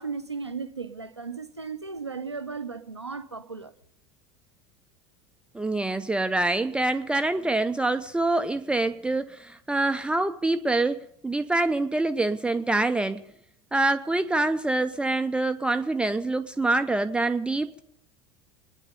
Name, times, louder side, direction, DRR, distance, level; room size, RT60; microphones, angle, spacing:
voice 1, 0.0-3.7, right 5 dB, 85° right, 0.7 m, -35 dB
voice 2, 5.5-13.2 13.7-17.8, right 2 dB, 5° right, 0.6 m, -25 dB
24.5 x 9.9 x 5.4 m
figure-of-eight pair, 75°, 14 cm